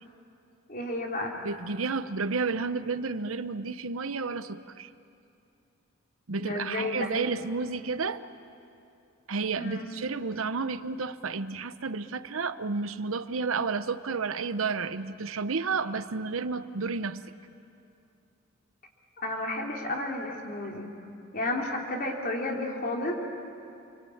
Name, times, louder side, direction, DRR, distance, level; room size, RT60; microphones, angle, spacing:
voice 1, 0.7-1.3 6.4-7.1 9.6-9.9 19.2-20.9 21.3-23.2, left 2 dB, 45° left, 0 dB, 3.5 m, -32 dB
voice 2, 1.4-4.9 6.3-8.2 9.3-17.2, right 4 dB, 75° right, 12 dB, 0.9 m, -31 dB
28.5 x 23.5 x 8.7 m, 2.6 s
head